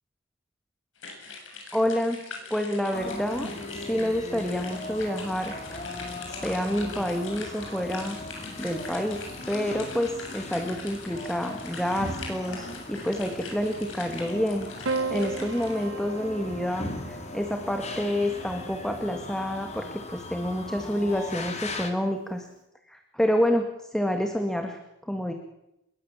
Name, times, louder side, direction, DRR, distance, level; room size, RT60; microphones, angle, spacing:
sound 1, 1.0-15.8, left 4 dB, 70° left, 7.6 m, -43 dB
voice 1, 1.7-2.2 2.5-3.5 3.9-5.6 6.3-8.2 8.6-22.5 22.9-25.3, equal, 5° left, 5 dB, 2.0 m, -28 dB
sound 2, 2.9-21.9, left 2 dB, 35° left, 3.2 m, -39 dB
Piano, 14.8-19.3 20.5-21.2, right 4 dB, 85° right, 1.3 m, -36 dB
26.0 x 22.0 x 7.4 m, 0.86 s
head